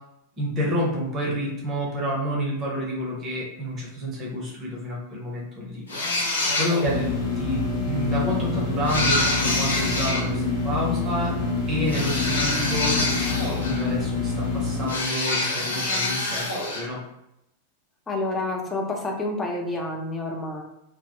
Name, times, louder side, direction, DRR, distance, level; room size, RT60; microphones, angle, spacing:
voice 1, 0.4-7.1 7.4-11.4 11.7-17.0, equal, 30° right, -3 dB, 0.7 m, -29 dB
sound 1, 5.9-7.0 8.8-10.3 11.9-13.9 14.9-16.9, left 2 dB, 70° left, 0.8 m, -26 dB
sound 2, 6.9-14.9, left 3 dB, 35° left, 0.9 m, -27 dB
voice 2, 18.1-20.6, left 2 dB, 15° left, 0 dB, 0.6 m, -28 dB
2.1 x 2.0 x 2.9 m, 0.84 s
figure-of-eight pair, 90°, 0 cm